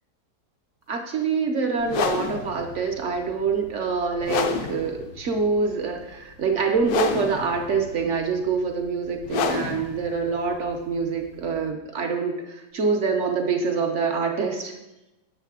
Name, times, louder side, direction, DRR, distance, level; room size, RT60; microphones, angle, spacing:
voice 1, 0.9-14.7, right 5 dB, 60° right, 3 dB, 0.9 m, -25 dB
sound 1, 1.8-11.7, left 6 dB, 70° left, 1.1 m, -31 dB
8.1 x 6.1 x 3.6 m, 0.99 s
omnidirectional pair, 1.7 m